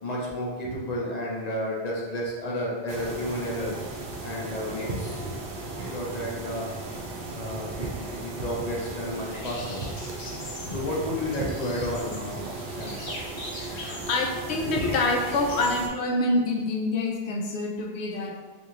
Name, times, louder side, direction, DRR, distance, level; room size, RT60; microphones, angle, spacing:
voice 1, 0.0-3.7 4.2-6.7 7.3-9.8 10.6-13.0, left 1 dB, 45° left, -3 dB, 0.7 m, -32 dB
sound 1, 2.9-15.9, right 2 dB, 65° right, 0.7 m, -36 dB
sound 2, 8.8-15.9, left 1 dB, 65° left, 1.1 m, -42 dB
voice 2, 13.6-18.4, left 2 dB, 85° left, 1 dB, 0.9 m, -26 dB
3.0 x 2.6 x 3.7 m, 1.4 s
omnidirectional pair, 1.1 m